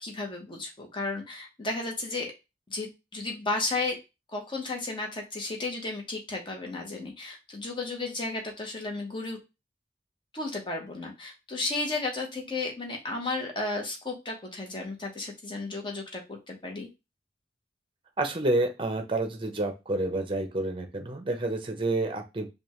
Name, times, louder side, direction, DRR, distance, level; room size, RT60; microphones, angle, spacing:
voice 1, 0.0-2.3 2.7-4.0 4.3-9.4 10.3-16.9, left 3 dB, 25° left, 1 dB, 1.0 m, -33 dB
voice 2, 18.2-22.5, right 2 dB, 30° right, 6 dB, 0.7 m, -29 dB
5.1 x 2.4 x 3.0 m, 0.25 s
head